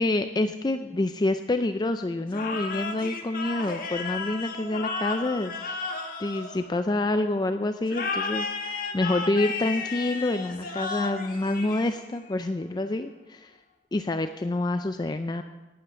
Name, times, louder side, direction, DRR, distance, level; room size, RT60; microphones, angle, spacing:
voice 1, 0.0-5.5 6.2-13.5 13.9-15.4, left 2 dB, 25° left, 8 dB, 0.4 m, -27 dB
sound 1, 2.3-7.1 7.9-12.3, left 4 dB, 50° left, 1.7 m, -33 dB
11.5 x 10.0 x 6.8 m, 1.1 s
head